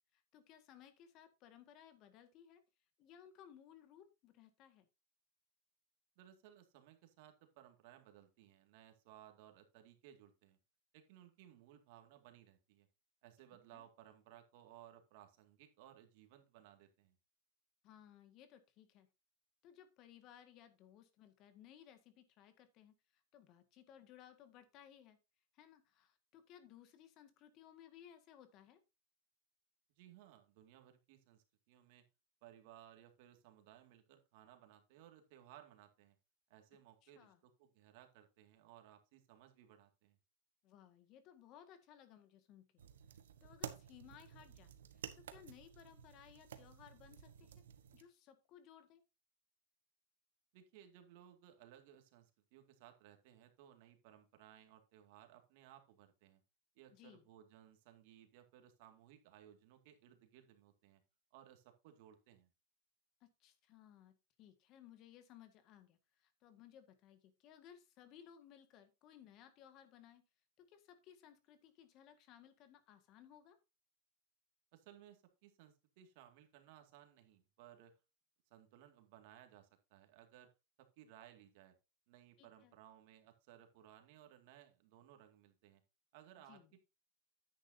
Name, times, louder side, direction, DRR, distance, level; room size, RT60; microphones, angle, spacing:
voice 1, 0.1-2.6 3.0-4.9 13.7-13.9 17.8-19.1 19.6-25.2 25.5-28.8 37.0-37.4 40.6-42.8 43.4-47.6 47.9-49.0 56.9-57.3 63.2-70.2 70.6-73.6 82.4-82.7 86.5-86.7, left 10 dB, 45° left, 9 dB, 1.8 m, -61 dB
voice 2, 6.2-10.6 10.9-12.9 13.2-17.2 30.0-32.0 32.4-36.2 36.5-40.2 50.5-56.4 56.8-61.0 61.3-62.5 74.7-77.9 78.5-80.5 80.8-81.8 82.1-85.8 86.1-86.8, right 11 dB, 60° right, 6 dB, 2.1 m, -61 dB
sound 1, 42.8-48.0, right 9 dB, 85° right, 1.1 m, -52 dB
10.0 x 9.0 x 2.8 m, 0.27 s
hypercardioid pair, 120°, 0 cm